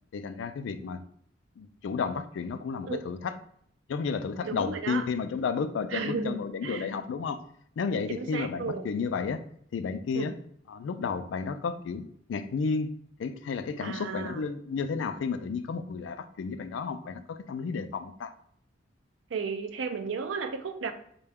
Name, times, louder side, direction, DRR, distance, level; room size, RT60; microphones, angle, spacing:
voice 1, 0.1-1.0 1.6-3.4 3.9-7.4 7.8-9.4 9.7-10.3 10.7-12.9 13.2-18.3, left 5 dB, 75° left, 0.3 m, -32 dB
voice 2, 4.4-5.0 5.9-7.0 8.1-8.9 10.1-10.3 13.8-14.4 19.3-20.9, right 5 dB, 90° right, 0.4 m, -34 dB
3.8 x 2.2 x 3.4 m
head